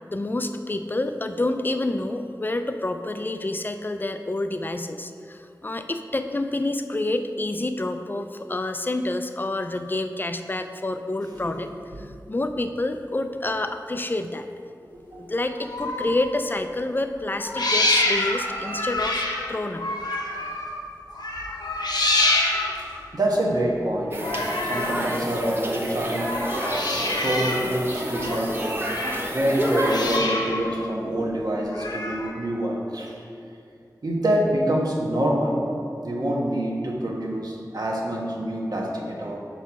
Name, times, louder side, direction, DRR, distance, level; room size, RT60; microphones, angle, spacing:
voice 1, 0.1-11.7 12.0-14.5 15.2-20.0, left 2 dB, 30° left, 8 dB, 0.4 m, -28 dB
voice 2, 11.2-12.0 14.9-15.3 22.8-26.4 27.2-28.8 29.3-33.2 34.0-35.6 36.0-39.4, right 1 dB, 65° right, -2 dB, 1.2 m, -26 dB
sound 1, 15.5-16.3 17.3-20.8 21.1-22.9 24.2-25.1 26.1-27.7 28.0-29.3 29.6-30.8 31.7-32.3, left 2 dB, 85° left, 0.9 m, -26 dB
sound 2, 24.1-30.2, right 1 dB, 35° right, 0.9 m, -29 dB
6.0 x 4.5 x 5.8 m, 2.4 s
wide cardioid pair, 70°, 7 cm